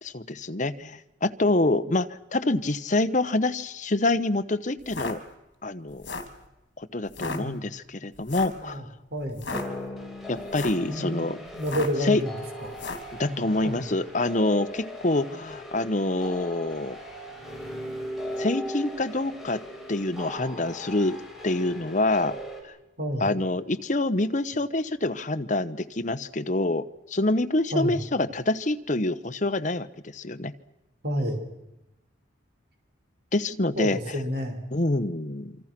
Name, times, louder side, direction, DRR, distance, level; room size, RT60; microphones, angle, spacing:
voice 1, 0.0-5.2 5.6-6.1 6.8-8.9 10.3-11.4 12.0-12.2 13.2-17.0 18.4-19.6 19.9-21.2 21.4-22.4 22.6-22.7 23.2-29.9 30.1-30.5 33.3-34.0 34.7-35.6, left 2 dB, 40° left, 11 dB, 1.0 m, -26 dB
sound 1, 4.8-5.1 5.9-6.4 7.1-7.4 8.3-8.6 9.3-9.6 10.4-10.9 11.6-12.0 12.7-13.1, left 3 dB, 65° left, 3.4 m, -34 dB
voice 2, 7.2-7.7 8.5-8.9 9.1-9.5 10.9-12.8 13.3-13.8 23.0-23.3 27.7-28.0 31.0-31.4 33.8-34.6, equal, 55° right, 4 dB, 5.5 m, -30 dB
sound 2, 9.5-22.6, equal, ahead, 5.4 m, -38 dB
27.0 x 26.0 x 6.1 m, 0.95 s
head